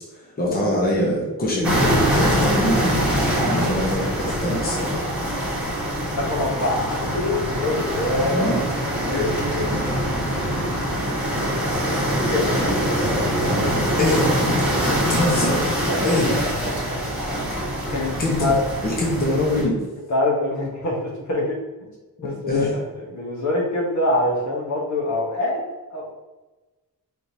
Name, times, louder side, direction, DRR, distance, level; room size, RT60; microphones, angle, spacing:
voice 1, 0.1-5.0 8.3-8.6 12.8-13.2 14.0-14.8 15.1-15.7 16.0-16.4 18.2-18.6 18.8-19.8 22.2-22.7, left 1 dB, 25° left, -3 dB, 0.9 m, -24 dB
sound 1, 1.6-19.6, equal, 5° right, 1.3 m, -23 dB
voice 2, 6.2-8.5 9.1-9.8 12.3-12.5 15.8-17.0 17.9-18.6 20.1-21.0 21.3-21.6 22.2-25.6 25.9-26.1, left 2 dB, 50° left, -2 dB, 1.1 m, -25 dB
4.5 x 3.6 x 2.8 m, 1.1 s
wide cardioid pair, 150°, 36 cm